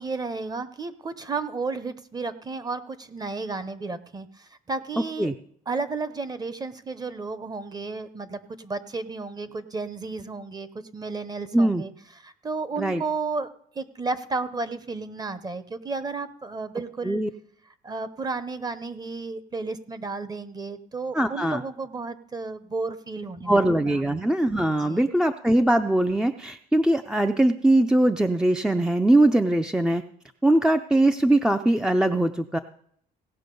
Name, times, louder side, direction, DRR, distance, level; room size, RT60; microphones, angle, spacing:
voice 1, 0.0-5.3 5.7-10.7 10.9-11.9 12.2-13.5 13.7-17.2 17.8-23.6 23.9-24.0 24.8-25.0, right 3 dB, 25° right, 14 dB, 0.8 m, -32 dB
voice 2, 21.1-21.6 23.5-30.0 30.4-32.6, right 1 dB, 5° right, 7 dB, 0.4 m, -21 dB
17.5 x 6.1 x 5.4 m, 0.65 s
cardioid pair, 110°, 17 cm